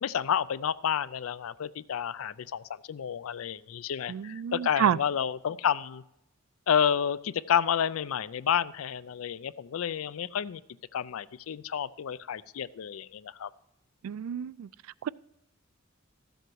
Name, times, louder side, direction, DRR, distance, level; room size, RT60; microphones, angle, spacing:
voice 1, 0.0-6.0 6.7-10.6 10.9-13.5, left 8 dB, 85° left, 18 dB, 0.4 m, -30 dB
voice 2, 4.1-5.0 14.0-14.7 15.0-15.1, right 9 dB, 85° right, 22 dB, 0.3 m, -29 dB
14.0 x 7.9 x 4.6 m, 0.83 s
head